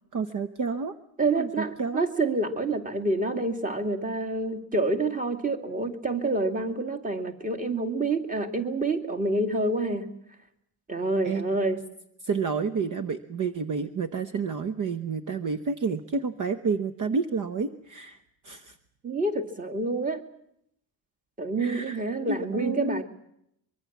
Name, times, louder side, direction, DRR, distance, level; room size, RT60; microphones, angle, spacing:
voice 1, 0.1-0.9 1.3-2.0 11.2-11.5 12.2-18.2 18.4-18.7 21.6-22.0 22.3-23.0, right 5 dB, 40° right, 10 dB, 1.1 m, -30 dB
voice 2, 1.2-10.1 10.9-11.8 19.0-20.2 21.4-23.0, right 2 dB, 15° right, 4 dB, 2.3 m, -27 dB
24.5 x 23.0 x 7.3 m, 0.75 s
cardioid pair, 155°, 45 cm